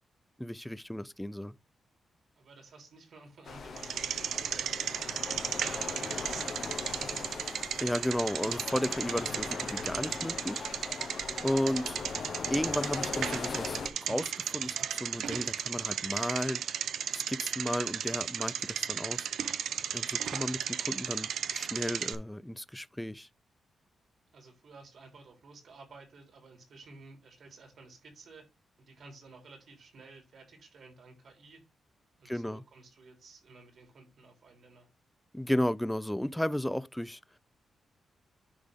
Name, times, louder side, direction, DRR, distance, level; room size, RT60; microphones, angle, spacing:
voice 1, 0.4-1.5 7.8-10.6 11.4-11.8 12.5-16.6 17.1-19.3 19.9-23.3 32.3-32.6 35.3-37.2, left 1 dB, 5° left, 0.3 m, -33 dB
voice 2, 2.3-7.5 11.4-11.7 20.7-20.8 24.3-28.5 28.8-31.6 32.2-34.9, right 3 dB, 60° right, 3.2 m, -54 dB
sound 1, 3.4-13.9, left 5 dB, 55° left, 0.9 m, -39 dB
Bicycle, 3.8-22.1, right 9 dB, 90° right, 0.5 m, -35 dB
10.0 x 3.5 x 3.6 m
wide cardioid pair, 145°, 0 cm